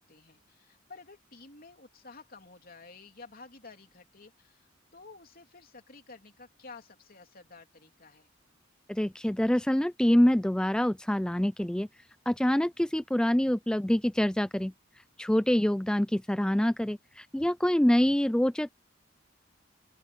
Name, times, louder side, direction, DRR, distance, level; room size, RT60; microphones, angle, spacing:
voice 1, 0.0-8.3, left 4 dB, 50° left, 3.3 m, -51 dB
voice 2, 8.9-11.9 12.3-14.7 15.2-18.7, equal, 5° left, 0.3 m, -26 dB
open air
head